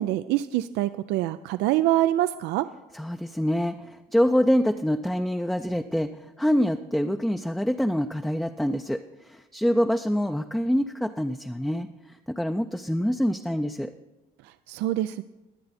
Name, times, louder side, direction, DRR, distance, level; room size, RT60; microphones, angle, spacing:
voice 1, 0.0-2.7 14.7-15.2, right 14 dB, 90° right, 13 dB, 0.4 m, -25 dB
voice 2, 2.9-13.9, equal, ahead, 5 dB, 0.4 m, -26 dB
22.5 x 7.8 x 4.2 m, 1.0 s
cardioid pair, 110°, 17 cm